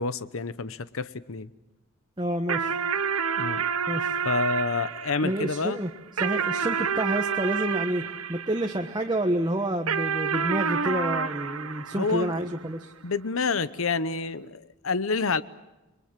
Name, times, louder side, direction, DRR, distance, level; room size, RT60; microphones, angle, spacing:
voice 1, 0.0-1.5 3.4-3.6 4.2-5.8 12.0-12.3 13.0-15.4, left 4 dB, 70° left, 15 dB, 0.9 m, -28 dB
voice 2, 2.2-2.8 3.9-4.2 5.2-5.9 6.2-12.9, right 1 dB, 20° right, 4 dB, 1.3 m, -29 dB
sound 1, 2.5-9.2 9.9-12.7, right 6 dB, 85° right, 1.3 m, -29 dB
29.5 x 22.5 x 7.4 m, 1.0 s
head